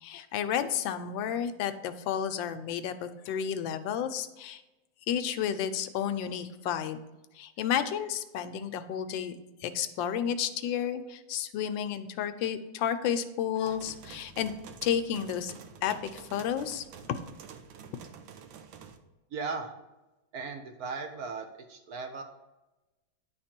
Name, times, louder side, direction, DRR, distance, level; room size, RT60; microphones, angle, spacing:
voice 1, 0.0-4.6 5.1-7.0 7.3-9.3 9.6-14.5 14.8-15.5 15.8-16.9, left 9 dB, 80° left, 10 dB, 1.3 m, -31 dB
sound 1, 13.6-19.0, right 6 dB, 85° right, 1.5 m, -48 dB
voice 2, 19.3-19.7 20.3-22.2, right 4 dB, 65° right, 5 dB, 1.0 m, -37 dB
10.0 x 3.7 x 4.3 m, 1.0 s
omnidirectional pair, 2.1 m